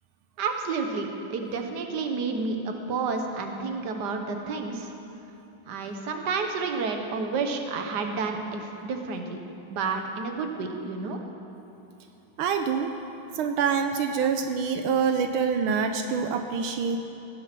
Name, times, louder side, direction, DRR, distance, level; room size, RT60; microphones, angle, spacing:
voice 1, 0.4-4.9 5.7-9.4 9.7-11.2, right 4 dB, 55° right, 4 dB, 1.7 m, -30 dB
voice 2, 12.4-12.9 13.3-17.0, right 6 dB, 85° right, 6 dB, 1.5 m, -26 dB
17.5 x 11.0 x 6.1 m, 2.9 s
omnidirectional pair, 2.3 m